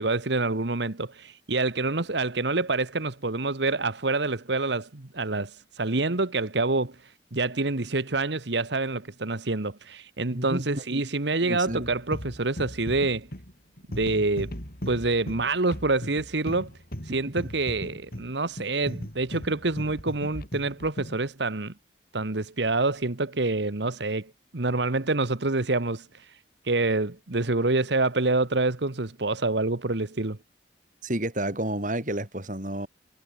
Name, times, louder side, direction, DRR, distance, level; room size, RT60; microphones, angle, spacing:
voice 1, 0.0-13.3 13.9-14.5 14.9-16.7 17.0-21.7 22.1-26.4 26.6-30.4, right 3 dB, 70° right, 1.4 m, -27 dB
voice 2, 10.3-11.1 11.4-11.9 31.0-32.9, right 1 dB, 45° right, 4.8 m, -31 dB
sound 1, 11.7-21.2, equal, 50° left, 6.6 m, -38 dB
head